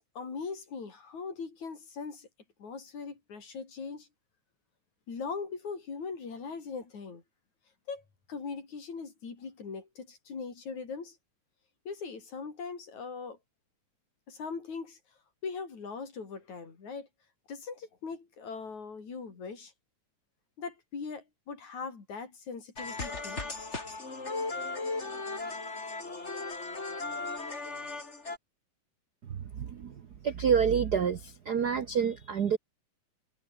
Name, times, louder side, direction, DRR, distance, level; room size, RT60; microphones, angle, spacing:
voice 1, 0.2-2.3 2.6-4.1 5.1-7.2 7.9-11.2 11.9-13.4 14.3-15.0 15.4-17.1 17.5-19.7 20.6-23.5, left 5 dB, 65° left, 6.0 m, -40 dB
sound 1, 22.8-28.4, left 3 dB, 20° left, 3.1 m, -36 dB
voice 2, 29.3-30.0 30.2-32.6, right 7 dB, 90° right, 0.8 m, -28 dB
omnidirectional pair, 3.6 m